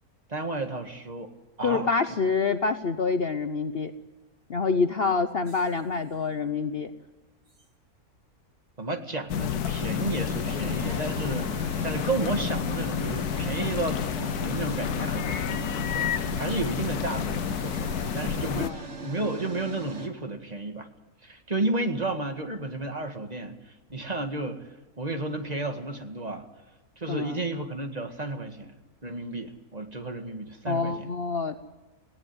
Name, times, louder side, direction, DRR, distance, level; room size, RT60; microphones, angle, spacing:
voice 1, 0.3-1.3 1.6-2.2 8.8-20.9 21.2-24.6 25.0-26.5 27.0-28.8 29.0-31.1, right 2 dB, 25° right, 5 dB, 1.9 m, -32 dB
voice 2, 1.6-3.9 4.5-6.9 18.5-18.8 27.1-27.4 30.7-31.6, left 4 dB, 50° left, 9 dB, 0.9 m, -27 dB
sound 1, 5.5-5.9 7.6-7.7 9.8-20.1, right 4 dB, 50° right, 2.5 m, -39 dB
sound 2, 9.3-18.7, left 9 dB, 80° left, 1.4 m, -30 dB
19.0 x 17.0 x 9.6 m, 1.1 s
omnidirectional pair, 1.6 m